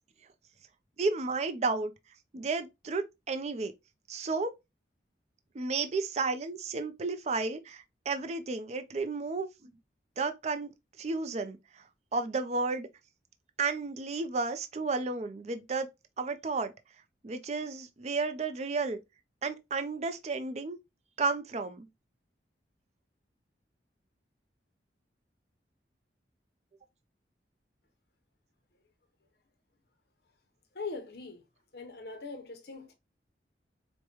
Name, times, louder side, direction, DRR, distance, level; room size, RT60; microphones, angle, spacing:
voice 1, 1.0-1.9 2.3-3.7 4.1-4.5 5.5-9.7 10.2-10.7 11.0-11.8 12.1-12.9 13.6-15.9 16.2-16.7 17.2-19.0 19.4-20.8 21.2-21.9, right 3 dB, 35° right, 0.4 m, -32 dB
voice 2, 30.7-31.4 31.7-32.9, left 4 dB, 60° left, 0.7 m, -41 dB
4.7 x 2.1 x 2.9 m
head